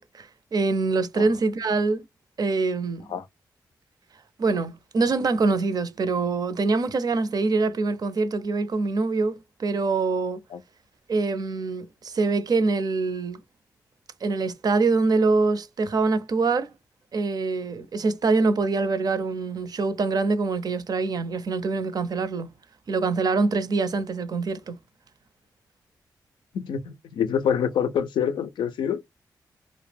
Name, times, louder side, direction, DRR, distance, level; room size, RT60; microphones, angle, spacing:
voice 1, 0.0-2.1 2.4-3.1 4.4-10.4 11.1-13.4 14.2-16.7 17.1-22.5 22.9-24.8, right 3 dB, 60° right, 0.5 m, -24 dB
voice 2, 26.5-29.0, left 8 dB, 85° left, 0.4 m, -26 dB
2.2 x 2.0 x 3.2 m
cardioid pair, 50°, 8 cm